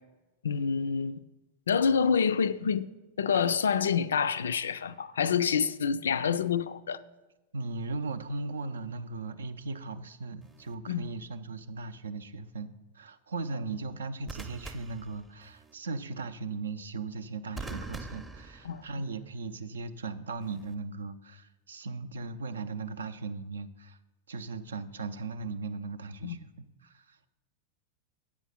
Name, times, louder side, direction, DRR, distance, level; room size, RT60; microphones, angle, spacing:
voice 1, 0.4-1.2 1.7-2.9 3.2-7.0 10.9-11.1 18.6-18.8 26.2-26.4, left 6 dB, 65° left, 0.3 m, -27 dB
voice 2, 7.5-24.0 24.3-27.3, right 3 dB, 70° right, 0.5 m, -38 dB
sound 1, 10.4-10.7 14.3-15.7 17.6-19.2 20.4-20.7, right 3 dB, 10° right, 0.6 m, -43 dB
8.5 x 6.2 x 5.4 m
figure-of-eight pair, 90°, 0 cm